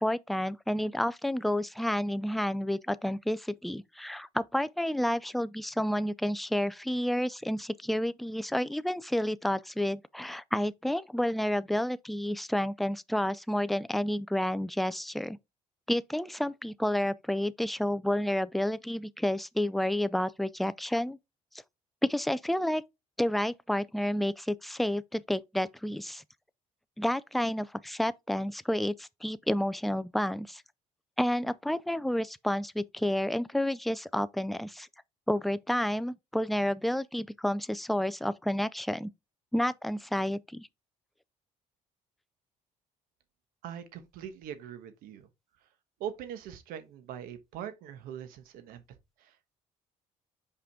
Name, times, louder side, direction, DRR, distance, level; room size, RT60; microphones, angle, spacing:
voice 1, 0.0-15.4 15.9-21.2 22.0-22.8 23.2-26.2 27.0-30.6 31.2-34.9 35.3-39.1 39.5-40.7, left 1 dB, ahead, 0.4 m, -30 dB
voice 2, 43.6-45.3 46.0-48.8 49.2-49.5, right 9 dB, 85° right, 1.2 m, -42 dB
5.7 x 5.0 x 3.6 m
cardioid pair, 110°, 15 cm